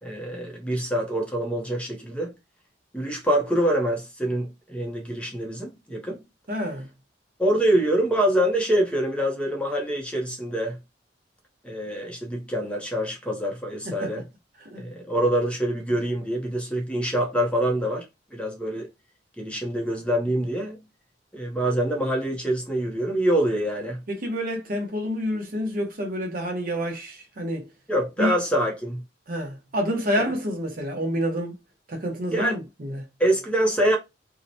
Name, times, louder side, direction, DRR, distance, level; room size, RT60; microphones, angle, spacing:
voice 1, 0.0-2.3 2.9-6.2 7.4-10.8 11.6-14.2 14.8-18.0 18.3-18.9 19.4-20.8 21.3-24.0 27.9-29.0 30.2-30.3 32.3-32.5 33.2-34.0, right 1 dB, 5° left, 0.6 m, -25 dB
voice 2, 6.5-6.9 13.9-14.1 14.7-14.8 24.1-27.7 28.2-28.4 29.3-31.5 31.9-33.0, equal, 50° right, 0.7 m, -28 dB
2.8 x 2.1 x 2.6 m
head